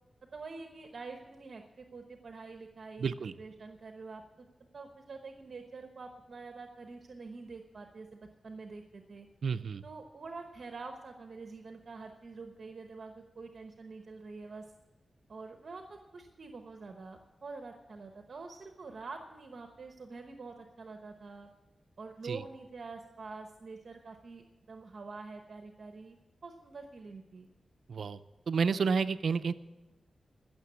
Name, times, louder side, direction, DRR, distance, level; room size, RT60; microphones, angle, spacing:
voice 1, 0.3-4.5 4.7-9.3 9.8-14.7 15.3-21.5 22.0-26.2 26.4-27.5, right 4 dB, 60° right, 5 dB, 1.0 m, -46 dB
voice 2, 3.0-3.3 9.4-9.8 22.2-22.4 27.9-28.2 28.5-29.5, right 5 dB, 80° right, 12 dB, 0.5 m, -30 dB
15.5 x 6.9 x 8.3 m, 1.1 s
wide cardioid pair, 85°, 0 cm